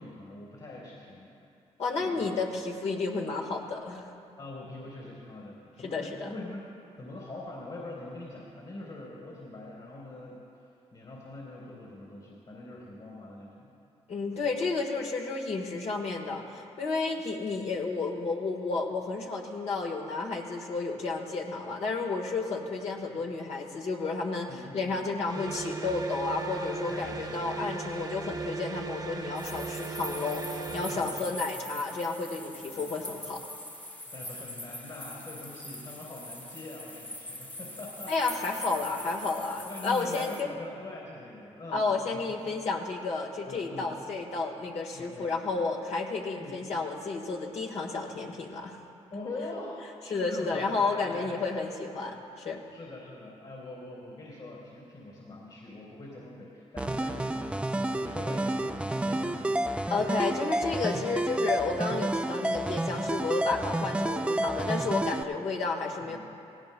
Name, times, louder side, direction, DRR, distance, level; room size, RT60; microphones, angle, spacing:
voice 1, 0.0-1.3 2.0-2.3 4.4-6.6 7.0-10.4 10.9-13.7 24.5-25.0 26.9-27.6 30.9-31.3 32.7-32.8 34.1-38.2 38.5-38.7 39.6-42.4 43.5-43.9 44.9-45.3 46.4-46.6 49.1-51.5 52.7-59.6 66.0-66.2, left 2 dB, 50° left, -5 dB, 3.2 m, -43 dB
voice 2, 1.8-4.1 5.8-6.3 14.1-33.4 38.1-40.5 41.7-48.8 50.1-52.6 59.9-66.2, left 3 dB, 70° left, -1 dB, 1.5 m, -32 dB
sound 1, 25.2-31.2, right 3 dB, 35° right, 1.0 m, -37 dB
sound 2, 29.4-40.4, left 1 dB, 15° left, 1.0 m, -43 dB
sound 3, 56.8-65.2, right 1 dB, 10° right, 0.4 m, -30 dB
17.5 x 17.0 x 2.2 m, 2.6 s
cardioid pair, 70°, 12 cm